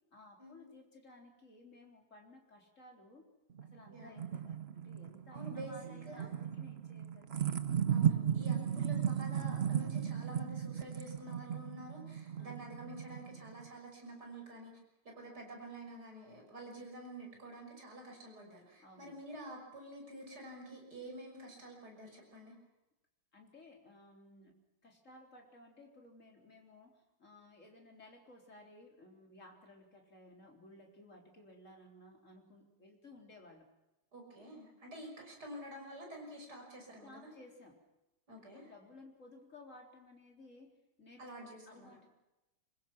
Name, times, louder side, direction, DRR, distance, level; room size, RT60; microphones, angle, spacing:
voice 1, 0.1-3.3 3.6-7.5 8.5-8.8 12.3-12.6 18.8-19.2 23.3-33.7 37.0-37.8 38.4-42.1, left 2 dB, 35° left, 1 dB, 4.2 m, -57 dB
sound 1, 3.6-13.7, right 9 dB, 85° right, 0.5 m, -36 dB
voice 2, 3.9-4.4 5.3-6.3 7.9-14.8 15.0-22.6 34.1-37.3 38.3-38.7 41.2-41.9, right 1 dB, 45° right, 1 dB, 6.7 m, -49 dB
25.5 x 22.0 x 6.1 m, 0.98 s
omnidirectional pair, 2.4 m